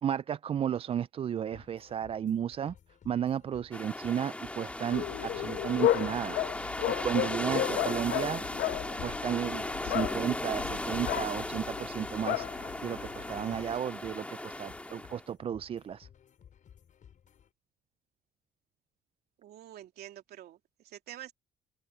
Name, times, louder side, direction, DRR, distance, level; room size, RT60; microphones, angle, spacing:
voice 1, 0.0-2.7 3.1-6.4 6.9-8.4 9.0-16.1, right 9 dB, 35° right, 0.4 m, -33 dB
sound 1, 1.5-17.5, left 8 dB, 50° left, 7.7 m, -58 dB
sound 2, 3.7-15.2, left 1 dB, 5° left, 2.1 m, -37 dB
sound 3, 4.9-13.8, left 14 dB, 75° left, 1.1 m, -34 dB
voice 2, 19.4-20.6 20.8-21.3, right 12 dB, 70° right, 2.9 m, -47 dB
open air
cardioid pair, 110°, 17 cm